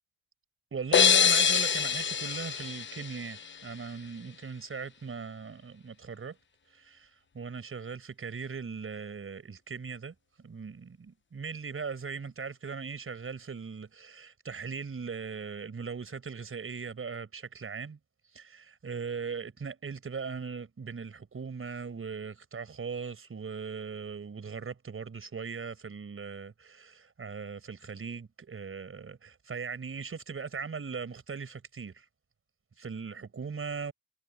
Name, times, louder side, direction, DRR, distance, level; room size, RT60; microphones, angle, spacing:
voice 1, 0.7-6.4 6.7-18.0 18.3-32.1 32.8-33.9, right 5 dB, 30° right, 6.0 m, -39 dB
sound 1, 0.9-3.7, left 7 dB, 25° left, 1.0 m, -25 dB
supercardioid pair, 100°, 45 cm